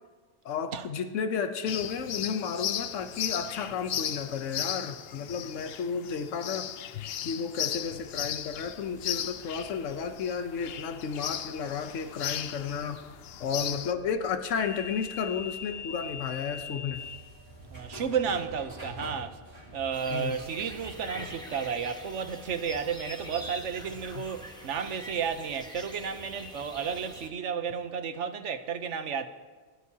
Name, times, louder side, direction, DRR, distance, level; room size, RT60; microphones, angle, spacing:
voice 1, 0.4-6.7 7.2-13.0 13.4-17.0 20.1-20.4 24.1-24.2, left 6 dB, 85° left, 1.1 m, -32 dB
sound 1, 1.7-13.9, left 10 dB, 65° left, 0.7 m, -36 dB
sound 2, 7.7-24.0, left 3 dB, 20° right, 3.2 m, -46 dB
voice 2, 17.7-19.4 19.7-29.3, right 7 dB, 75° right, 1.2 m, -32 dB
sound 3, 19.9-27.3, equal, 5° left, 1.0 m, -44 dB
22.0 x 12.0 x 2.8 m
omnidirectional pair, 1.2 m